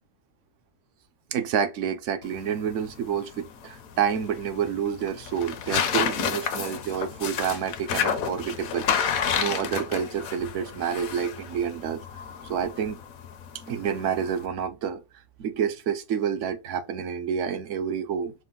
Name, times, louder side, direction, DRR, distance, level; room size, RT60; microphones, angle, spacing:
voice 1, 1.3-12.0 12.4-13.0 13.7-15.0 15.4-18.3, right 8 dB, 65° right, 0.9 m, -29 dB
sound 1, 2.2-14.5, left 7 dB, 80° left, 1.1 m, -31 dB
5.0 x 2.1 x 3.7 m
omnidirectional pair, 1.5 m